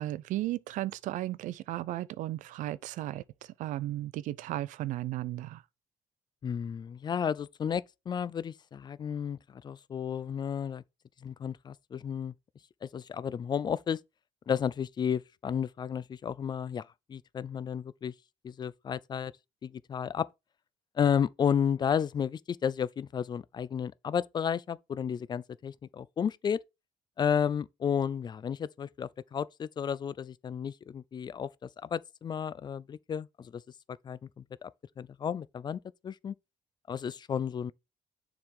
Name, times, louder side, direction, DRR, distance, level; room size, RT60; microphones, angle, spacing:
voice 1, 0.0-3.2 3.6-5.6, right 15 dB, 85° right, 0.4 m, -35 dB
voice 2, 6.4-10.8 11.2-12.3 12.8-14.0 14.5-18.1 18.4-19.3 19.6-20.3 21.0-26.6 27.2-33.6 34.0-34.7 35.0-36.3 36.9-37.7, left 8 dB, 35° left, 0.4 m, -32 dB
7.0 x 3.7 x 4.7 m
cardioid pair, 125°, 13 cm